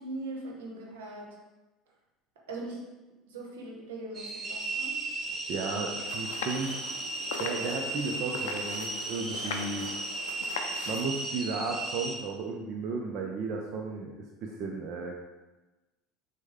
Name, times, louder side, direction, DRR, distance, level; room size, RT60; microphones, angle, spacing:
voice 1, 0.0-1.4 2.5-2.8 3.3-5.0, right 2 dB, 80° right, 0 dB, 0.9 m, -40 dB
sound 1, 4.1-12.2, right 2 dB, 35° right, 0.8 m, -35 dB
voice 2, 5.2-6.8 7.4-9.9 10.9-15.2, right 4 dB, 55° right, 0 dB, 0.5 m, -34 dB
sound 2, 6.0-11.0, left 6 dB, 80° left, 0.4 m, -40 dB
6.1 x 2.2 x 3.5 m, 1.1 s
hypercardioid pair, 75°, 0 cm